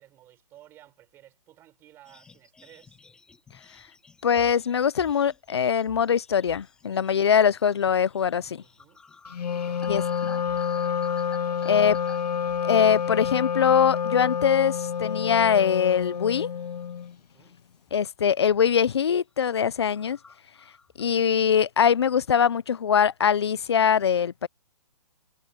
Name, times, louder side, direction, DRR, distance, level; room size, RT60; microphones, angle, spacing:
voice 1, 0.0-3.0 6.9-7.1 8.6-9.0 9.5-11.1 11.4-12.2 17.2-17.6, right 13 dB, 10° right, 4.8 m, -54 dB
sound 1, 2.0-13.8 14.1-14.3 14.8-16.3 16.6-17.4 17.9-18.1 18.4-18.8 19.1-19.2 19.4-19.5 19.8-21.2, left 4 dB, 5° left, 2.3 m, -54 dB
voice 2, 4.2-8.6 9.9-10.0 11.7-12.0 12.6-16.5 17.9-20.2 21.0-24.5, left 7 dB, 45° left, 0.5 m, -22 dB
Wind instrument woodwind instrument, 9.3-17.1, left 7 dB, 90° left, 0.9 m, -28 dB
hypercardioid pair, 175°, 20 cm